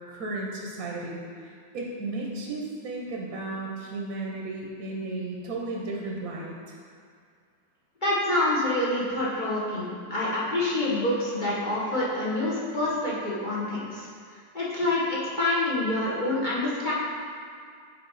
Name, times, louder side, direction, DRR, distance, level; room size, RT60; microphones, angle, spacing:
voice 1, 0.1-6.8, right 2 dB, 60° right, -2 dB, 1.1 m, -34 dB
voice 2, 8.0-14.1 14.5-16.9, left 1 dB, 35° left, -7 dB, 0.9 m, -27 dB
6.9 x 4.6 x 4.0 m, 2.2 s
omnidirectional pair, 1.9 m